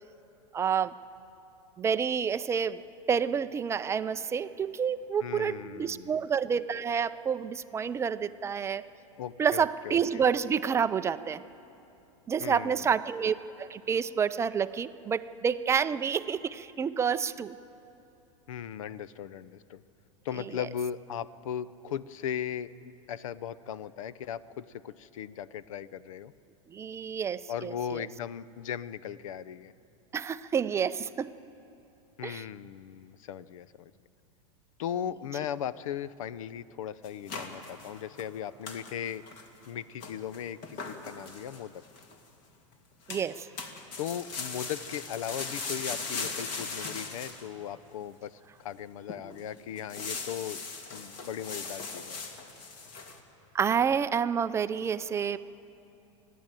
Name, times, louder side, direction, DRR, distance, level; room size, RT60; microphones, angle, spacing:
voice 1, 0.5-0.9 1.8-2.8 3.1-8.8 9.4-11.4 12.3-17.5 26.7-28.0 30.1-31.3 32.2-32.4 43.1-43.5 53.5-55.4, right 7 dB, 15° right, 12 dB, 0.4 m, -29 dB
voice 2, 5.2-6.3 9.2-10.2 12.4-12.9 18.5-19.8 20.2-22.7 23.1-26.3 27.5-29.7 32.2-33.9 34.8-39.2 39.7-41.8 44.0-50.6 50.9-52.2, left 9 dB, 80° left, 18 dB, 0.7 m, -38 dB
sound 1, 37.0-38.3 38.7-38.9 39.3-39.7 40.0-42.1 43.1-43.3 43.6-47.4 48.0-48.1 48.7-48.8 49.1-49.4 49.8-53.2, left 4 dB, 50° left, 2.5 m, -39 dB
28.5 x 11.0 x 9.0 m, 2.9 s
supercardioid pair, 130°, 17 cm